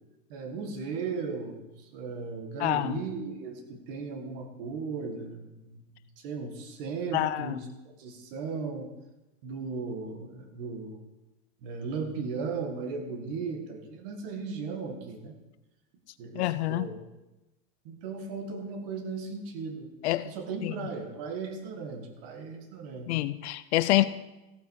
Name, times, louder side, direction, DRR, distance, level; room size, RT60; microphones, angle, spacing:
voice 1, 0.3-6.0 6.2-7.7 8.0-8.9 9.4-11.0 11.6-15.4 16.2-16.9 17.9-19.9 20.2-23.2, right 4 dB, 45° right, 5 dB, 1.8 m, -36 dB
voice 2, 2.6-2.9 7.1-7.6 16.3-16.9 20.0-20.3 20.6-20.7 23.1-24.0, left 16 dB, 55° left, 14 dB, 0.6 m, -26 dB
15.5 x 8.6 x 4.7 m, 0.99 s
supercardioid pair, 180°, 40 cm